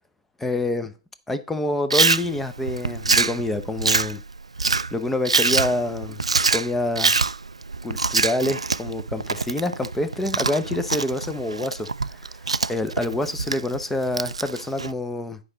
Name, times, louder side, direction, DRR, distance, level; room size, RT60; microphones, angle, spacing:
voice 1, 0.4-0.9 1.3-4.2 4.9-6.2 6.5-7.1 7.8-12.2 12.7-15.4, left 2 dB, 5° left, 0.7 m, -27 dB
Chewing mastication, 1.9-14.9, right 4 dB, 85° right, 0.3 m, -25 dB
9.7 x 5.0 x 3.9 m
figure-of-eight pair, 125°, 3 cm